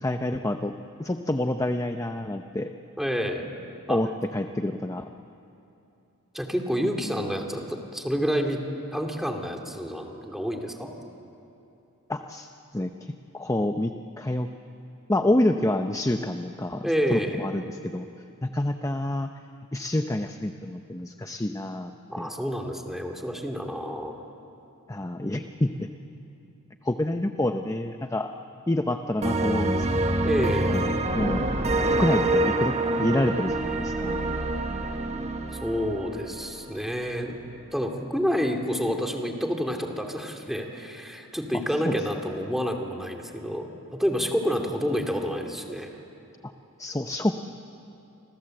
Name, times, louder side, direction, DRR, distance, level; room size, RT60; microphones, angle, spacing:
voice 1, 0.0-2.7 3.9-5.1 12.1-14.5 15.1-18.1 18.4-19.3 19.7-21.9 22.2-22.3 24.9-25.9 26.8-28.3 28.7-30.2 30.7-31.5 31.9-34.2 41.8-42.0 46.8-47.3, left 1 dB, 15° left, 6 dB, 0.7 m, -28 dB
voice 2, 3.0-3.5 3.9-4.0 6.3-8.6 8.9-10.9 16.8-17.5 22.1-24.2 30.2-30.8 35.6-37.4 37.7-43.7 44.0-45.9, equal, ahead, 2 dB, 2.6 m, -28 dB
sound 1, 29.2-36.8, right 2 dB, 30° right, 1.5 m, -26 dB
29.5 x 26.0 x 7.8 m, 2.8 s
head